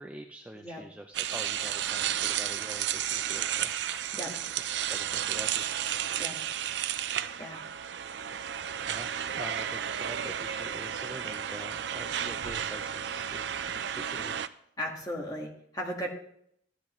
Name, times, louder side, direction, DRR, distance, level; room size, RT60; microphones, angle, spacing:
voice 1, 0.0-3.7 4.6-5.6 8.9-9.1 9.4-14.3, right 1 dB, 5° right, 3 dB, 0.4 m, -45 dB
sound 1, 1.1-14.5, right 9 dB, 65° right, 0.4 m, -32 dB
voice 2, 14.8-16.1, equal, 20° left, 0 dB, 1.6 m, -36 dB
13.5 x 9.9 x 3.1 m, 0.70 s
head